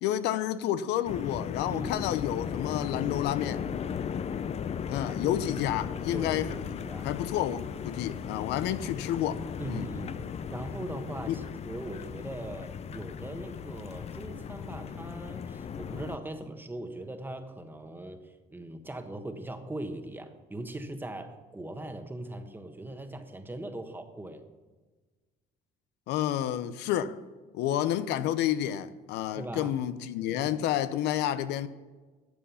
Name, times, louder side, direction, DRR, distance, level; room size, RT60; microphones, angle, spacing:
voice 1, 0.0-3.6 4.9-9.9 11.3-11.4 26.1-27.2 27.5-31.7, left 11 dB, 85° left, 0.7 m, -30 dB
sound 1, 1.0-16.2, left 7 dB, 40° left, 0.6 m, -36 dB
voice 2, 1.7-2.0 5.1-5.4 6.1-7.1 9.6-10.2 10.5-24.4 29.4-29.7 30.3-30.5, right 1 dB, 10° right, 1.3 m, -40 dB
13.0 x 8.8 x 5.7 m
cardioid pair, 110°, 17 cm